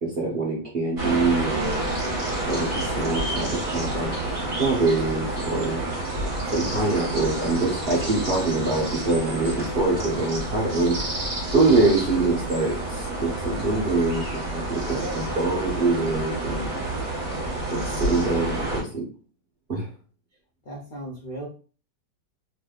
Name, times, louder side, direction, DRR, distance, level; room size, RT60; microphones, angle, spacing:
voice 1, 0.0-1.9 2.5-4.1 4.6-5.8 6.5-11.0 11.5-16.8 17.7-19.0 19.7-19.9, right 3 dB, 50° right, -3 dB, 0.7 m, -24 dB
sound 1, 1.0-18.8, right 2 dB, 30° right, 1.4 m, -29 dB
voice 2, 14.8-15.4 20.6-21.5, right 1 dB, 55° left, -4 dB, 0.5 m, -35 dB
3.2 x 3.0 x 2.3 m, 0.38 s
omnidirectional pair, 1.9 m